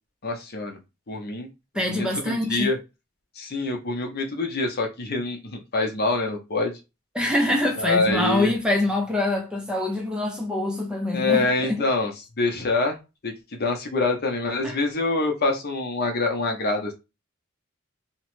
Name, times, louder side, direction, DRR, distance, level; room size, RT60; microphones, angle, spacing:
voice 1, 0.2-0.8 1.1-1.5 1.9-2.8 3.4-6.7 7.8-8.5 11.1-12.1 12.4-13.0 13.2-16.9, left 3 dB, 50° left, 0.7 m, -25 dB
voice 2, 1.7-2.7 7.1-11.8 14.6-14.8, left 1 dB, 5° right, 0.4 m, -25 dB
3.0 x 2.1 x 3.0 m
head